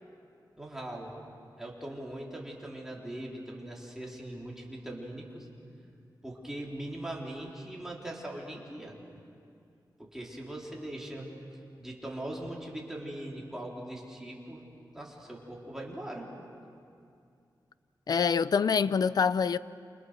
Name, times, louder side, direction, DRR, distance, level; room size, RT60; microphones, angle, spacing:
voice 1, 0.6-1.2 1.6-5.5 6.2-9.0 10.0-11.3 11.8-14.6 14.9-16.3, right 1 dB, 5° right, 3.9 m, -40 dB
voice 2, 18.1-19.6, left 6 dB, 60° left, 0.5 m, -25 dB
29.5 x 28.0 x 6.4 m
wide cardioid pair, 175°, 8 cm